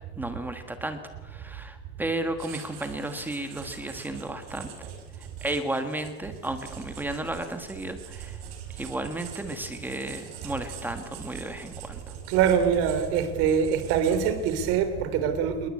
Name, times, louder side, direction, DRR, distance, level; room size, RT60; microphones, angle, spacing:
voice 1, 0.2-4.7 5.1-8.4 8.8-12.1, right 1 dB, 5° right, 1.4 m, -33 dB
Writing, 2.4-15.0, right 8 dB, 75° right, 6.1 m, -46 dB
voice 2, 12.3-15.7, right 7 dB, 50° right, 3.5 m, -24 dB
27.0 x 21.5 x 8.5 m
cardioid pair, 180°, 30 cm